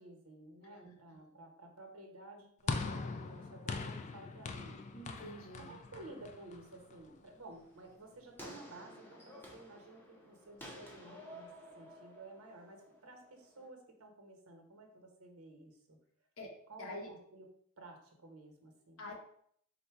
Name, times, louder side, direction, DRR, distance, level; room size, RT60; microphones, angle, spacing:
voice 1, 0.0-4.8 5.6-11.5 11.7-16.0 16.7-17.5 17.8-19.0, right 2 dB, 85° right, 3 dB, 1.0 m, -53 dB
voice 2, 0.6-1.2 4.9-5.8 16.4-17.1 19.0-19.1, left 1 dB, 70° left, -1 dB, 1.1 m, -48 dB
sound 1, 2.7-7.1, left 4 dB, 35° left, 0.3 m, -41 dB
sound 2, 7.5-13.7, equal, 10° left, 0.7 m, -53 dB
4.0 x 2.2 x 4.5 m, 0.65 s
head